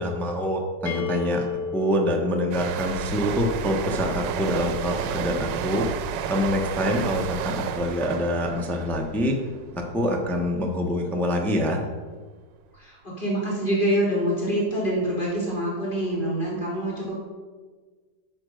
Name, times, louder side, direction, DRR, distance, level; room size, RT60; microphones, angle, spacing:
voice 1, 0.0-1.5 1.7-9.4 9.7-11.8, equal, ahead, 1 dB, 0.7 m, -26 dB
sound 1, 0.9-4.6, left 6 dB, 70° left, 0.5 m, -35 dB
sound 2, 2.5-10.0 10.3-10.6, right 8 dB, 80° right, 1.3 m, -31 dB
voice 2, 12.7-17.1, right 1 dB, 25° left, -6 dB, 3.6 m, -26 dB
11.5 x 4.5 x 6.4 m, 1.4 s
omnidirectional pair, 1.9 m